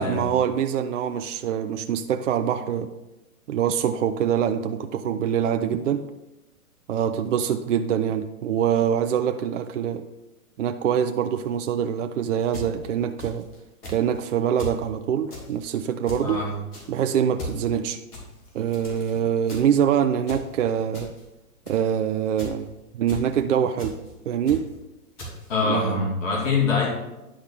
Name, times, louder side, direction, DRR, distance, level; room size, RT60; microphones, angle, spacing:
voice 1, 0.0-2.9 3.5-6.0 6.9-10.0 10.6-13.5 13.9-16.4 16.9-18.0 18.5-21.1 21.7-22.7 22.9-23.9 24.3-24.6 25.7-26.0, right 8 dB, 55° right, 7 dB, 0.5 m, -24 dB
sound 1, 12.4-13.6 13.8-14.2 14.6-14.9 15.3-15.6 16.0-16.3 16.7-17.0 17.4-17.6 18.1-19.2 19.4-19.8 20.2-20.5 20.9-21.2 21.6-21.9 22.3-22.6 23.1-23.3 23.8-24.1 24.4-24.8 25.2-25.5, equal, 75° left, 2.7 m, -38 dB
voice 2, 25.5-26.9, left 4 dB, 55° left, -4 dB, 2.4 m, -24 dB
10.0 x 4.4 x 3.6 m, 0.99 s
figure-of-eight pair, 120°, 46 cm